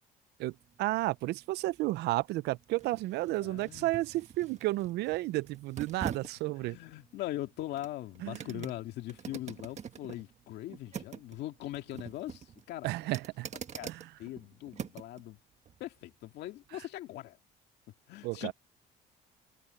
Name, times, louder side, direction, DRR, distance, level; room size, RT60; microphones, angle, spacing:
voice 1, 0.4-6.8 8.2-8.6 12.8-13.5 13.9-14.1 18.2-18.5, right 18 dB, 80° right, 0.5 m, -32 dB
sound 1, 0.5-15.2 15.7-15.8, right 8 dB, 40° right, 1.5 m, -46 dB
voice 2, 3.4-3.9 6.0-6.1 6.6-12.9 13.7-13.9 14.2-15.4 15.8-17.4 18.1-18.5, left 15 dB, 80° left, 2.3 m, -41 dB
cardioid pair, 110°, 17 cm